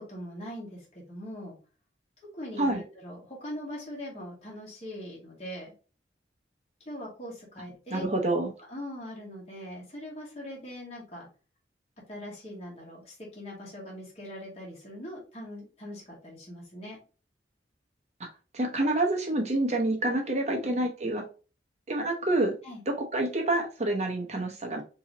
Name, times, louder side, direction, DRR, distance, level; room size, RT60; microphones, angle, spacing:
voice 1, 0.0-1.6 2.2-5.7 6.8-8.1 8.7-11.3 12.1-17.0 20.5-20.7 22.6-22.8, equal, 35° left, -3 dB, 1.3 m, -41 dB
voice 2, 7.9-8.5 18.2-18.3 18.5-21.2 21.9-22.6 22.9-24.8, right 2 dB, 35° right, 2 dB, 0.8 m, -27 dB
3.9 x 2.9 x 2.9 m, 0.35 s
head